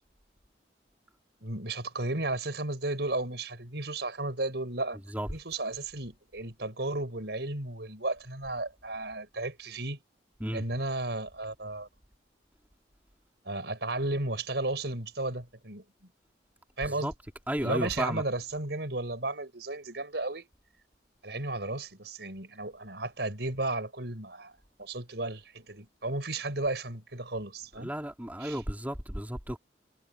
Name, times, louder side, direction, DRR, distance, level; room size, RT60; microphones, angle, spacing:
voice 1, 1.4-5.0 5.3-10.0 10.5-11.9 13.5-15.8 16.8-17.1 17.6-20.5 21.2-27.9 28.4-28.6, right 2 dB, 70° right, 5.6 m, -34 dB
voice 2, 17.5-18.2 27.8-29.6, equal, 10° right, 2.4 m, -33 dB
head